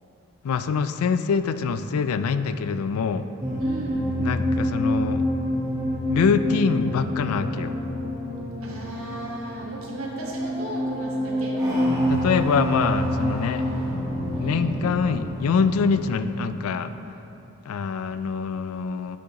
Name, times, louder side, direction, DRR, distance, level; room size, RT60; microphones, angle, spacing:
voice 1, 0.4-3.3 4.2-5.2 6.1-7.7 12.1-13.6 14.4-16.9 17.7-19.2, left 5 dB, 75° left, 11 dB, 0.3 m, -24 dB
sound 1, 3.4-16.1, equal, 15° right, 1.2 m, -27 dB
voice 2, 3.6-4.1 8.6-12.0 13.5-14.0 14.3-14.9, right 2 dB, 70° right, -3 dB, 1.3 m, -36 dB
10.0 x 6.1 x 2.9 m, 2.8 s
head